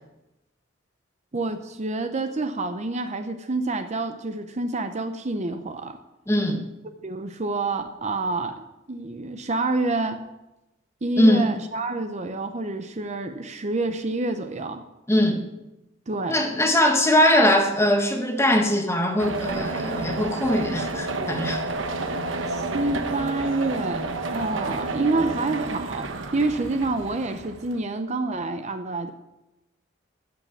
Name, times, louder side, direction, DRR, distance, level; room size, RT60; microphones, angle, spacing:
voice 1, 1.3-6.0 7.0-10.2 11.0-14.9 16.1-16.4 22.5-29.1, right 2 dB, 35° right, 8 dB, 0.7 m, -28 dB
voice 2, 6.3-6.6 11.2-11.5 15.1-15.4 16.3-21.6, left 1 dB, 15° left, 3 dB, 1.5 m, -21 dB
sound 1, 19.2-27.8, right 2 dB, 80° right, 1.1 m, -30 dB
14.0 x 5.8 x 8.5 m, 0.97 s
head